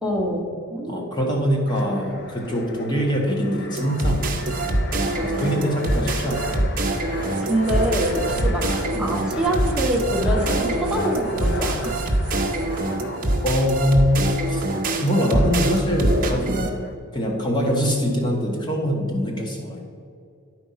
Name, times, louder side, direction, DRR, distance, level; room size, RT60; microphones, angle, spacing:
voice 1, 0.0-1.3 7.4-8.7 9.0-11.9, right 1 dB, 5° right, -2 dB, 1.2 m, -25 dB
voice 2, 0.9-4.5 5.2-6.5 8.9-9.2 12.5-12.7 13.4-14.6 15.0-16.6 17.1-19.8, equal, 20° left, 0 dB, 1.4 m, -23 dB
Fixed-wing aircraft airplane, 1.7-16.9, left 2 dB, 45° left, 0.7 m, -35 dB
sound 1, 3.8-16.7, right 1 dB, 40° right, 0.9 m, -24 dB
sound 2, 7.3-12.8, right 3 dB, 80° right, 0.6 m, -39 dB
11.5 x 4.6 x 5.6 m, 2.5 s
head